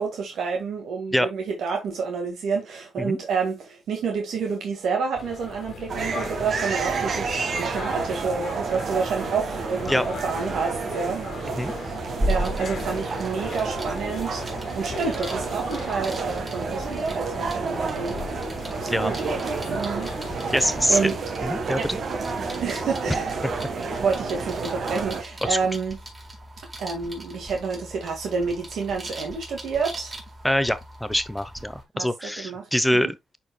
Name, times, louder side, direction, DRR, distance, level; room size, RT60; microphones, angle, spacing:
voice 1, 0.0-12.0 12.3-14.4 14.7-18.2 18.7-19.2 19.8-20.1 20.9-21.2 21.8-21.9 22.4-23.4 23.9-26.0 26.8-30.2 31.9-33.1, right 5 dB, 80° right, 1.9 m, -29 dB
sound 1, 5.1-21.0, left 6 dB, 65° left, 1.6 m, -39 dB
sound 2, 5.9-25.2, right 4 dB, 60° right, 1.5 m, -30 dB
sound 3, 12.2-31.8, right 1 dB, 25° right, 4.1 m, -37 dB
voice 2, 20.5-21.0 21.4-22.0 25.4-25.6 30.4-33.4, equal, 5° left, 0.8 m, -24 dB
10.5 x 4.4 x 2.2 m
cardioid pair, 85°, 0 cm